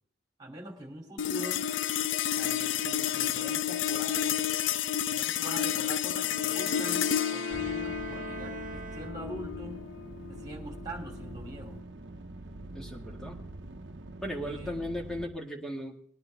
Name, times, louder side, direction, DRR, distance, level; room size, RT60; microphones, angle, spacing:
voice 1, 0.4-1.6 2.3-4.5 5.1-9.8 10.3-11.8 14.4-14.8, right 1 dB, 20° right, 1 dB, 3.1 m, -43 dB
sound 1, 1.2-11.8, left 10 dB, 85° left, 0.4 m, -31 dB
Bowed string instrument, 6.1-9.6, right 4 dB, 45° right, 0.6 m, -43 dB
sound 2, 7.5-15.3, right 2 dB, 65° right, 1.0 m, -44 dB
voice 2, 12.7-13.6 14.2-15.9, equal, 5° left, 0 dB, 2.0 m, -37 dB
20.5 x 9.9 x 3.5 m, 0.62 s
head